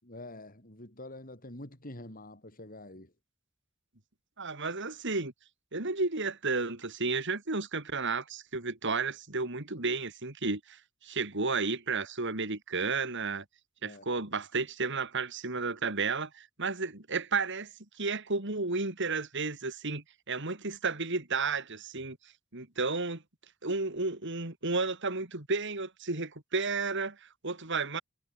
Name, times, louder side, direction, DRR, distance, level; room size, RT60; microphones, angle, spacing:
voice 1, 0.0-3.1 13.8-14.0, left 1 dB, 45° left, 7.7 m, -46 dB
voice 2, 4.4-5.3 5.7-13.4 13.8-17.7 18.0-22.2 22.5-23.2 23.6-28.0, right 4 dB, 60° right, 3.4 m, -32 dB
head